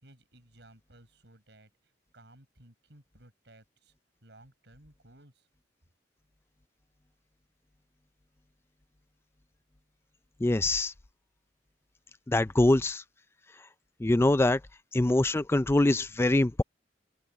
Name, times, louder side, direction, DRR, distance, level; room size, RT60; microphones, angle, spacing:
voice 1, 0.0-3.9 4.2-5.5, right 1 dB, 75° right, 5.6 m, -57 dB
voice 2, 10.4-10.9 12.3-13.0 14.0-14.6 14.9-16.6, left 2 dB, 15° left, 0.4 m, -24 dB
open air
head